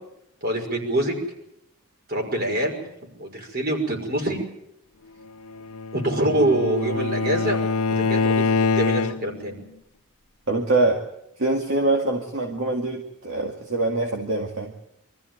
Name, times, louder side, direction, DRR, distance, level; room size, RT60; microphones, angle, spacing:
voice 1, 0.4-1.2 2.1-2.8 3.2-4.4 5.9-7.6 7.8-9.5, right 1 dB, 45° right, 2 dB, 5.8 m, -25 dB
Bowed string instrument, 5.5-9.5, left 4 dB, 90° left, 0.9 m, -24 dB
voice 2, 10.5-11.1 11.4-14.7, right 2 dB, 65° right, 2 dB, 2.2 m, -24 dB
24.5 x 14.5 x 9.1 m, 0.80 s
head